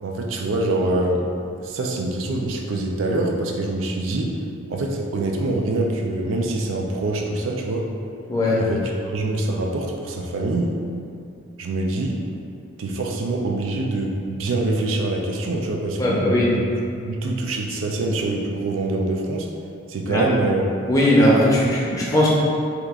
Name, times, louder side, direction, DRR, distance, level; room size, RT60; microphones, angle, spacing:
voice 1, 0.0-1.2 1.6-4.3 4.7-7.9 8.6-10.8 11.6-12.2 12.8-16.2 16.5-16.6 17.0-19.5 19.9-20.6, right 2 dB, 80° right, 1 dB, 0.4 m, -25 dB
voice 2, 8.3-8.6 16.0-16.5 20.1-20.2 20.9-22.3, left 1 dB, 15° left, -6 dB, 0.5 m, -18 dB
2.9 x 2.4 x 3.4 m, 2.5 s
head